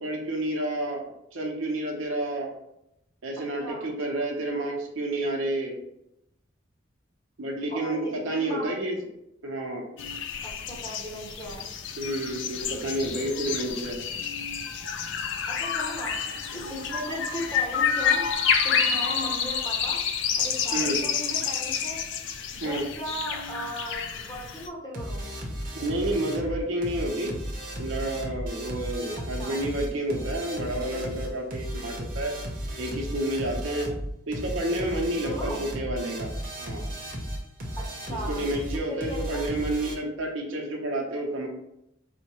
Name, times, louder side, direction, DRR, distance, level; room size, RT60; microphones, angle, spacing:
voice 1, 0.0-2.5 3.2-5.8 7.4-9.0 9.4-9.9 12.0-14.0 20.7-21.0 22.6-22.9 25.7-27.4 27.8-32.3 32.8-33.9 34.3-36.3 36.6-36.8 38.1-41.5, right 1 dB, 85° right, 0 dB, 0.7 m, -30 dB
voice 2, 8.3-8.7 10.7-11.7 15.5-18.2 18.6-20.0 20.4-22.0 22.5-25.2 29.4-29.6 35.1-35.6 37.8-38.5 38.9-39.5, equal, 20° left, -3 dB, 0.8 m, -37 dB
sound 1, 10.0-24.7, left 7 dB, 65° left, 0.3 m, -29 dB
sound 2, 24.9-40.0, equal, 45° right, 0.7 m, -35 dB
4.3 x 2.1 x 2.9 m, 0.82 s
head